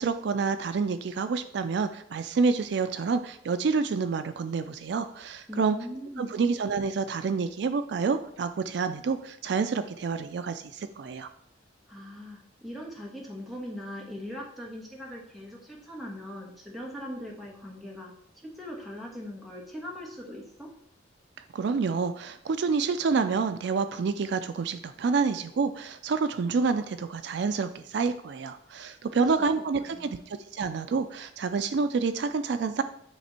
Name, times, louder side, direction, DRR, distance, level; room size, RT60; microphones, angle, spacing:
voice 1, 0.0-5.8 6.2-11.3 21.5-32.8, right 5 dB, 65° right, 10 dB, 0.4 m, -28 dB
voice 2, 5.5-6.3 11.9-18.1 18.4-20.7 29.2-29.3 29.8-30.2, equal, ahead, -3 dB, 1.4 m, -40 dB
10.0 x 3.4 x 4.3 m, 0.73 s
head